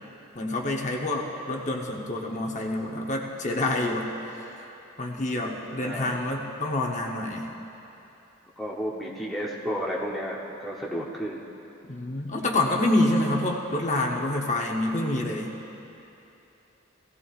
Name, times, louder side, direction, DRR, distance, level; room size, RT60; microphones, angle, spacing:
voice 1, 0.3-4.6 5.0-7.5 11.9-15.5, left 1 dB, 35° left, 0 dB, 0.9 m, -27 dB
voice 2, 5.5-6.2 8.6-11.4, equal, ahead, -4 dB, 0.8 m, -32 dB
17.0 x 15.5 x 2.4 m, 2.9 s
head